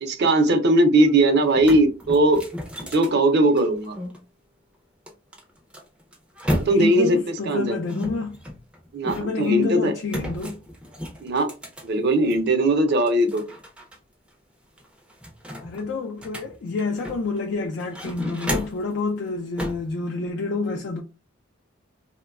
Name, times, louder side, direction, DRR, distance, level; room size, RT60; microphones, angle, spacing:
voice 1, 0.0-2.4 2.9-4.0 6.5-7.2 7.5-7.8 8.9-9.9 11.2-11.5 11.8-13.4, right 1 dB, 55° right, 0.5 m, -19 dB
sound 1, 1.0-1.1 1.4-4.2 5.1-7.1 7.9-9.5 10.1-12.5 12.9-14.0 14.3-14.4 14.8-17.4 17.8-18.9 19.6-19.9, equal, 5° right, 0.4 m, -33 dB
voice 2, 6.7-8.4 9.1-10.6 15.6-21.0, left 4 dB, 60° left, 0.3 m, -28 dB
2.9 x 2.1 x 2.3 m
head